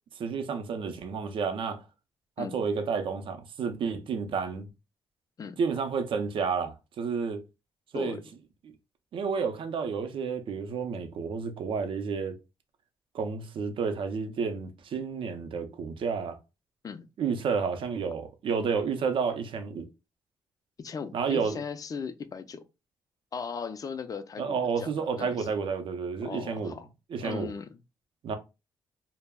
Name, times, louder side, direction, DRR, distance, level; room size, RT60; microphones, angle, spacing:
voice 1, 0.2-1.8 2.4-4.7 5.6-7.4 7.9-8.2 9.1-12.4 13.1-16.4 17.2-19.9 21.1-21.6 24.4-26.7 27.1-27.5 28.2-28.4, right 5 dB, 65° right, 0.5 m, -30 dB
voice 2, 20.8-22.7 23.3-25.5 26.2-26.9 27.2-27.8, left 6 dB, 40° left, 0.4 m, -38 dB
2.2 x 2.0 x 3.4 m
supercardioid pair, 60°, 9 cm